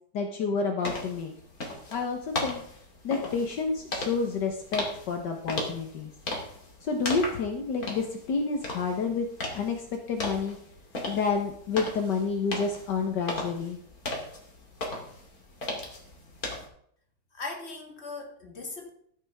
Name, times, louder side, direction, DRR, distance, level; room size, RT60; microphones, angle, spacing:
voice 1, 0.1-1.3 1.9-2.6 3.0-6.1 6.8-9.3 9.5-9.8 10.1-10.6 11.0-13.8, left 4 dB, 70° left, 3 dB, 1.8 m, -29 dB
sound 1, 0.8-16.7, left 2 dB, 50° left, 3.0 m, -37 dB
voice 2, 17.3-18.9, left 3 dB, 35° left, 1 dB, 2.5 m, -39 dB
13.0 x 9.8 x 3.6 m, 0.65 s
omnidirectional pair, 2.0 m